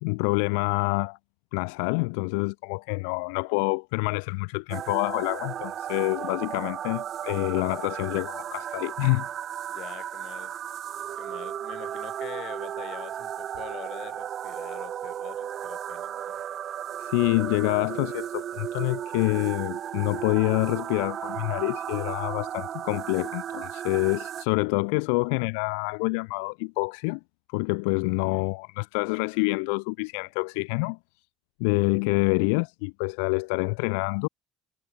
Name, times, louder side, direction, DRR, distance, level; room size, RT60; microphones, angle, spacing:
voice 1, 0.0-1.2 1.5-9.3 17.0-27.2 27.5-31.0 31.6-34.3, left 35 dB, 80° left, 0.6 m, -27 dB
sound 1, 4.7-24.4, right 10 dB, 45° right, 0.5 m, -35 dB
voice 2, 9.7-10.5 11.2-16.4, left 13 dB, 55° left, 1.9 m, -44 dB
supercardioid pair, 95°, 0 cm